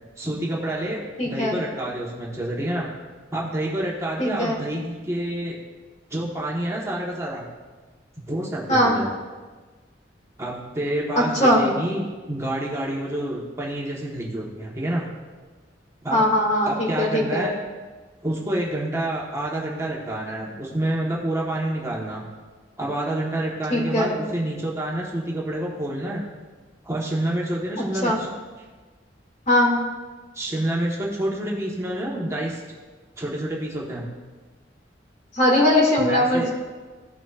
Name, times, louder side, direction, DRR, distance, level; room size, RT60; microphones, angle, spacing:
voice 1, 0.2-2.9 3.3-5.6 6.1-7.5 8.3-9.1 10.4-15.1 16.0-16.3 16.6-17.5 18.2-22.2 22.8-26.2 26.8-28.3 30.3-32.6 33.2-34.1 36.0-36.5, right 1 dB, 15° right, -4 dB, 1.2 m, -28 dB
voice 2, 1.2-1.6 4.2-4.6 8.7-9.0 11.4-11.6 16.1-17.5 23.7-24.1 28.0-28.2 29.5-29.8 35.3-36.5, left 1 dB, 40° left, -2 dB, 2.1 m, -20 dB
15.5 x 6.0 x 2.4 m, 1.3 s
head